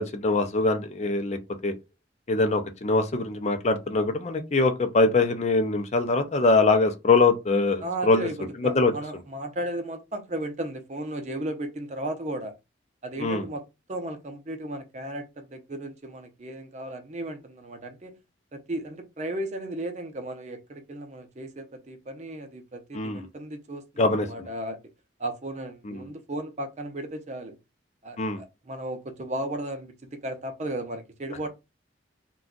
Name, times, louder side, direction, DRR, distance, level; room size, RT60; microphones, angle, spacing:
voice 1, 0.0-1.7 2.3-8.3 8.6-8.9 13.2-13.4 22.9-23.3 24.0-24.5 25.9-26.1 28.2-28.4, left 3 dB, 35° left, 0.5 m, -23 dB
voice 2, 7.8-12.5 13.0-13.6 13.9-18.2 18.5-24.8 25.2-27.6 28.0-31.5, right 1 dB, 40° right, 0.5 m, -35 dB
2.5 x 2.3 x 3.7 m
head